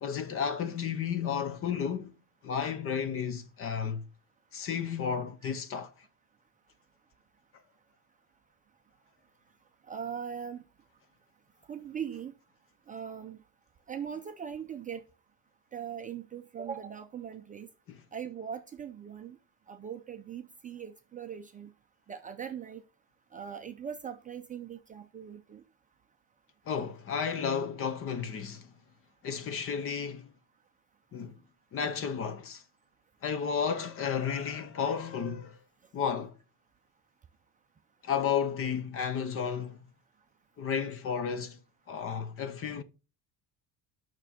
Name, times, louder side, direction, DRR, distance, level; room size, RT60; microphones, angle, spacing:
voice 1, 0.0-2.1 2.4-4.0 4.5-5.9 17.9-18.0 26.7-28.7 29.2-30.3 31.1-31.4 31.7-32.6 33.2-35.6 35.9-36.4 38.0-39.8 40.6-41.6 41.9-42.8, left 7 dB, 35° left, 0.7 m, -32 dB
voice 2, 9.9-10.6 11.7-12.3 12.9-13.4 13.9-15.0 15.7-17.7 18.1-19.4 19.7-21.7 22.1-22.8 23.3-25.6, right 8 dB, 20° right, 0.4 m, -40 dB
9.2 x 6.1 x 4.2 m
cardioid pair, 170°, 40 cm